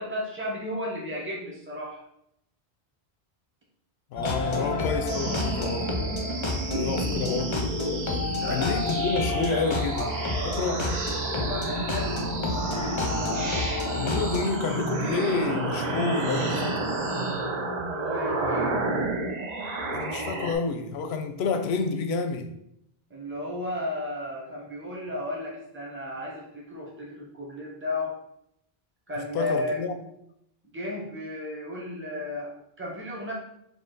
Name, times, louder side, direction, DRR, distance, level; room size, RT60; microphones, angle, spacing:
voice 1, 0.0-2.0 4.3-4.8 8.4-8.9 9.3-11.0 11.3-12.2 17.9-18.7 23.1-28.2 29.1-29.8 30.7-33.3, left 1 dB, 10° right, 1.0 m, -34 dB
voice 2, 4.1-6.4 6.8-7.7 8.5-10.1 10.5-10.8 13.9-17.0 19.9-22.5 29.3-30.0, left 4 dB, 90° left, 0.8 m, -29 dB
sound 1, 4.2-14.4, left 2 dB, 40° left, 0.5 m, -30 dB
sound 2, 5.1-20.5, right 2 dB, 45° right, 0.8 m, -31 dB
4.7 x 2.7 x 3.9 m
omnidirectional pair, 1.0 m